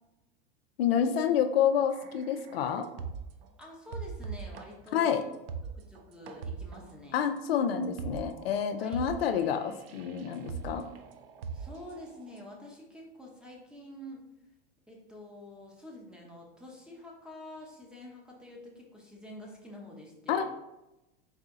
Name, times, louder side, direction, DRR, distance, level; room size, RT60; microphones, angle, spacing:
voice 1, 0.8-2.9 4.9-5.2 7.1-10.9 20.3-20.4, left 8 dB, 85° left, 7 dB, 0.5 m, -28 dB
sound 1, 1.9-3.5 3.9-12.4, right 5 dB, 75° right, 0.6 m, -42 dB
voice 2, 3.6-5.3 5.7-7.2 8.8-9.0 11.5-14.3 14.9-20.4, left 1 dB, 5° right, -2 dB, 0.8 m, -47 dB
4.0 x 2.7 x 3.6 m, 0.95 s
hypercardioid pair, 120°, 29 cm